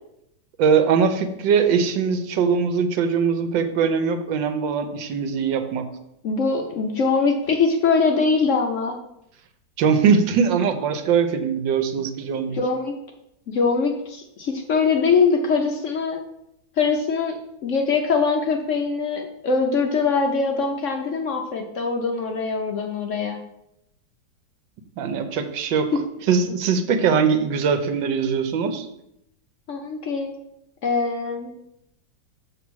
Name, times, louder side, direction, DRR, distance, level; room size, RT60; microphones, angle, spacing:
voice 1, 0.6-5.9 9.8-12.6 25.0-25.9 26.3-28.9, right 6 dB, 75° right, 8 dB, 1.4 m, -21 dB
voice 2, 6.2-8.9 12.5-12.9 13.5-16.2 16.8-17.4 17.6-23.4 29.7-30.3 30.8-31.5, left 4 dB, 70° left, 3 dB, 0.7 m, -22 dB
7.0 x 3.4 x 6.1 m, 0.80 s
omnidirectional pair, 2.1 m